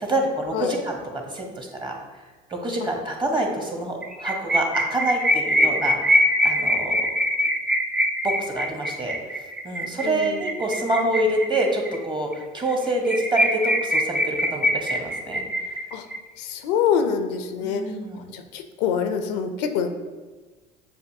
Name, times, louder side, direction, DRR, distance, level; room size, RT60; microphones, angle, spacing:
voice 1, 0.0-1.9 2.5-7.0 8.2-9.2 9.6-15.4 17.6-18.2, right 1 dB, 20° right, 2 dB, 1.0 m, -26 dB
sound 1, 4.0-12.0 12.3-12.4 12.7-12.8 13.0-16.2, equal, 5° right, 0.4 m, -23 dB
voice 2, 10.0-10.4 15.9-16.1 16.4-17.8 18.3-19.9, left 7 dB, 80° left, 7 dB, 0.5 m, -25 dB
6.7 x 2.6 x 2.7 m, 1.3 s
hypercardioid pair, 70°, 21 cm